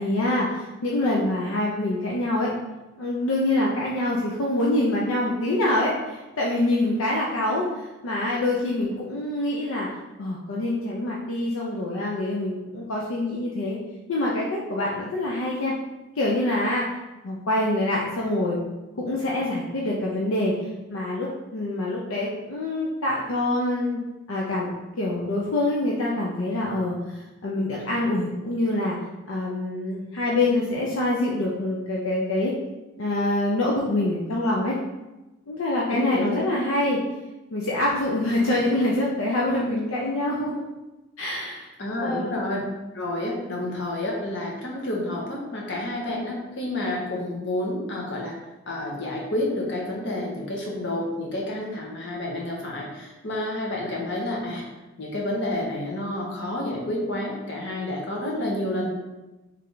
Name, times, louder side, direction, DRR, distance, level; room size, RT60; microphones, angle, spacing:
voice 1, 0.0-2.5 3.0-13.8 14.1-15.7 16.2-16.9 17.2-18.6 19.0-24.0 24.3-24.7 25.0-29.0 29.3-32.5 33.0-34.8 35.5-37.0 37.5-40.6 41.2-41.7 42.0-42.4, left 1 dB, 85° left, -3 dB, 0.6 m, -25 dB
voice 2, 35.9-36.4 41.8-42.6 42.9-48.3 48.7-54.6 55.0-58.9, left 1 dB, 60° left, -2 dB, 1.0 m, -29 dB
3.3 x 3.3 x 3.8 m, 1.1 s
head